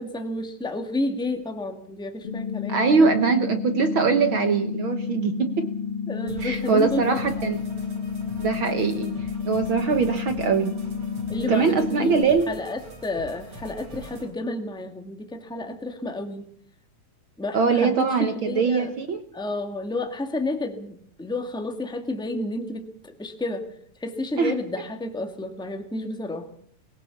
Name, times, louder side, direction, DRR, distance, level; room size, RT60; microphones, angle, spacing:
voice 1, 0.0-3.1 6.1-7.4 11.3-12.2 12.5-16.5 17.4-18.9 19.3-23.7 24.0-26.5, left 2 dB, 5° left, 5 dB, 0.8 m, -31 dB
sound 1, 2.2-12.2, left 7 dB, 45° left, 2.7 m, -31 dB
voice 2, 2.7-5.7 6.4-7.6 8.4-9.1 9.4-10.8 11.5-12.5 17.5-19.2 24.4-24.6, right 5 dB, 65° right, 8 dB, 1.2 m, -22 dB
sound 2, 6.3-14.3, right 1 dB, 45° right, 5.2 m, -43 dB
21.5 x 17.0 x 7.1 m, 0.63 s
omnidirectional pair, 3.8 m